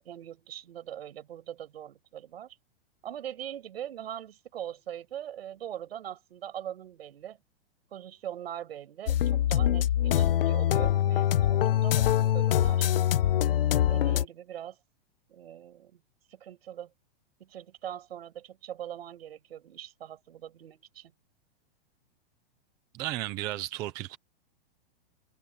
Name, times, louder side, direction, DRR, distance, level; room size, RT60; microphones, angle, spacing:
voice 1, 0.0-2.6 3.0-7.4 7.9-12.9 13.9-14.8 15.3-16.0 16.3-16.9 17.4-21.1, right 10 dB, 80° right, 7.8 m, -42 dB
sound 1, 9.1-14.3, left 11 dB, 65° left, 0.9 m, -24 dB
voice 2, 22.9-24.2, right 16 dB, 10° right, 0.5 m, -34 dB
supercardioid pair, 175°, 30 cm